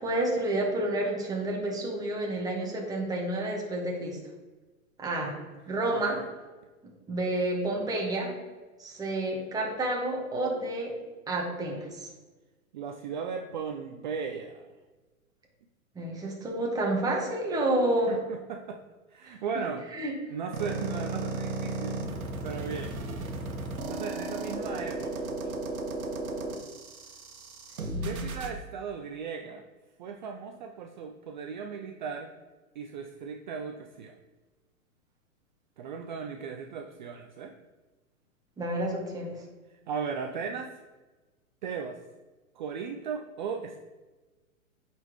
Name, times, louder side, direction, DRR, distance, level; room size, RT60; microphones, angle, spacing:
voice 1, 0.0-4.2 5.0-5.3 5.7-6.2 7.1-8.3 8.8-11.0 11.3-12.1 15.9-18.2 19.3-19.4 19.9-20.1 27.8-28.3 38.6-39.4, right 1 dB, 10° right, -2 dB, 1.2 m, -30 dB
voice 2, 5.9-6.3 12.7-14.7 18.1-18.8 19.1-19.8 20.3-22.0 22.4-23.0 23.9-25.6 28.0-29.6 30.0-32.3 32.8-34.2 35.8-37.5 39.7-40.8 41.6-42.0 42.6-43.8, right 6 dB, 35° right, 4 dB, 0.4 m, -37 dB
sound 1, 20.5-28.5, right 2 dB, 75° right, 1.4 m, -35 dB
8.6 x 4.2 x 3.1 m, 1.2 s
hypercardioid pair, 125°, 42 cm